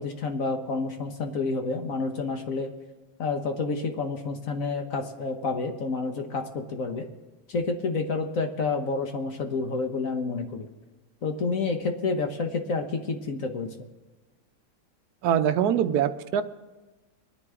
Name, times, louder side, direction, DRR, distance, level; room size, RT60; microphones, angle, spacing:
voice 1, 0.0-2.7 3.2-7.1 7.5-10.7 11.2-13.7, left 4 dB, 50° left, 5 dB, 1.2 m, -29 dB
voice 2, 15.2-16.4, right 9 dB, 65° right, 9 dB, 1.0 m, -23 dB
23.5 x 9.9 x 3.7 m, 1.2 s
omnidirectional pair, 2.2 m